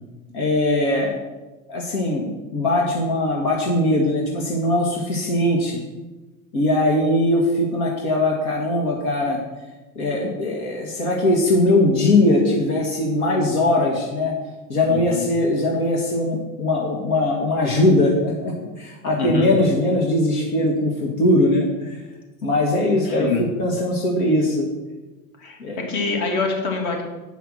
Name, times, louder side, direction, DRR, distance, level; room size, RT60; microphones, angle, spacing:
voice 1, 0.3-1.2 1.7-5.8 6.5-9.4 10.0-14.3 14.7-22.0 22.4-23.3 23.6-24.7 25.6-25.8, left 1 dB, 80° left, -1 dB, 2.1 m, -20 dB
voice 2, 14.9-15.2 19.2-19.5 23.1-23.4 25.4-25.6 25.9-27.0, left 4 dB, 55° left, 0 dB, 3.0 m, -25 dB
9.3 x 5.8 x 6.4 m, 1.2 s
supercardioid pair, 115°, 43 cm